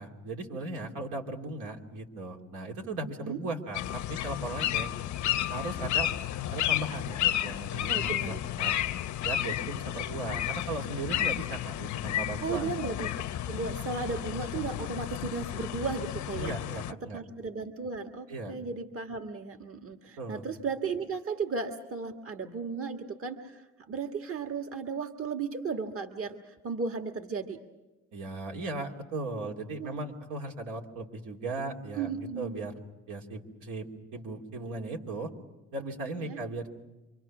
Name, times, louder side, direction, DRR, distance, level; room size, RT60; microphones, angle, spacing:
voice 1, 0.0-5.0 5.5-6.1 6.5-8.8 9.2-12.7 16.4-17.2 18.3-18.6 20.2-20.4 28.1-32.7 33.1-35.3 35.7-36.7, right 2 dB, 90° right, 1 dB, 2.9 m, -37 dB
sound 1, 3.7-16.9, left 12 dB, 70° left, 0.7 m, -32 dB
voice 2, 7.9-8.4 12.4-16.5 17.1-27.6 29.8-30.0 32.0-32.6 36.2-36.4, right 5 dB, 45° right, 6 dB, 1.6 m, -35 dB
27.5 x 24.5 x 6.1 m, 1.1 s
cardioid pair, 90°, 30 cm